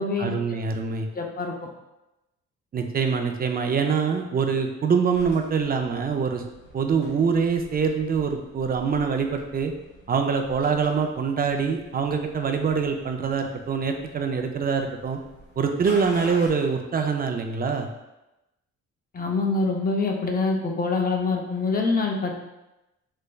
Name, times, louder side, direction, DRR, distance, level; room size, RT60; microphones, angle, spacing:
voice 1, 0.2-1.1 2.7-6.4 6.7-9.7 10.1-15.2 15.6-17.9, right 5 dB, 30° right, 5 dB, 0.4 m, -24 dB
voice 2, 1.1-1.5 19.1-22.3, left 3 dB, 30° left, 1 dB, 0.5 m, -25 dB
sound 1, 5.1-16.5, left 1 dB, 80° left, 1.1 m, -47 dB
3.3 x 3.1 x 2.3 m, 0.97 s
cardioid pair, 90°, 30 cm